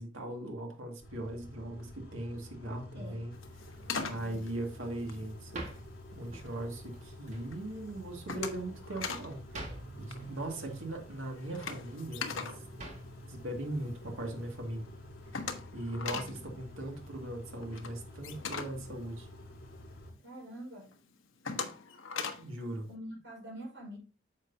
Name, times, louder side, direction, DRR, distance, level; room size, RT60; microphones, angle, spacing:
voice 1, 0.0-3.4 3.6-3.7 4.1-5.6 6.2-12.5 13.3-14.8 15.7-19.3 22.4-22.9, right 1 dB, 90° right, 2.1 m, -39 dB
Car / Idling / Accelerating revving vroom, 1.0-20.1, equal, 50° left, 4.1 m, -49 dB
sound 1, 3.3-5.9 6.3-6.8 7.2-7.6 7.9-9.3 9.6-9.8 10.0-13.8 14.2-14.3 14.6-14.7 14.8-19.9 20.3-20.4 20.9-22.6, left 5 dB, 85° left, 1.1 m, -40 dB
sound 2, 3.6-14.8, right 2 dB, 35° right, 1.7 m, -51 dB
voice 2, 4.1-4.5 20.2-20.9 22.9-24.0, equal, 60° right, 5.1 m, -46 dB
9.5 x 6.7 x 2.7 m
head